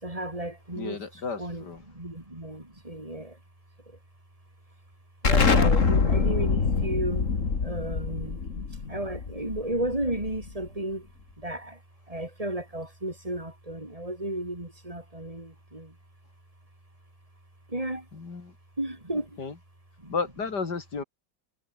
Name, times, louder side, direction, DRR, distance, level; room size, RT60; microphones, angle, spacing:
voice 1, 0.0-3.4 5.2-7.3 7.6-8.4 8.9-11.1 11.4-11.8 12.1-15.9 17.7-18.1 18.8-19.4 20.0-20.1, right 1 dB, 15° right, 4.1 m, -33 dB
voice 2, 0.8-1.8 5.6-6.0 18.1-18.5 19.4-19.5 20.1-21.0, left 4 dB, 55° left, 3.8 m, -33 dB
Explosion, 5.2-10.6, left 5 dB, 40° left, 2.3 m, -25 dB
omnidirectional pair, 2.2 m